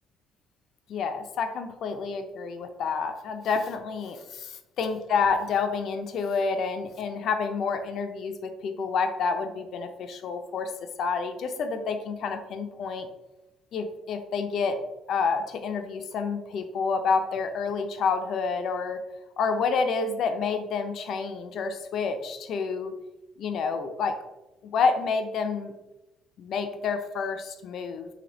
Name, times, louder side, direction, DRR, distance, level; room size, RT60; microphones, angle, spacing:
voice 1, 0.9-10.7 11.0-13.1 13.7-14.8 15.1-19.0 19.4-22.9 23.4-24.2 24.6-25.7 26.4-28.1, left 5 dB, 65° left, 7 dB, 0.5 m, -29 dB
3.3 x 2.7 x 3.8 m, 0.98 s
cardioid pair, 110°, 0 cm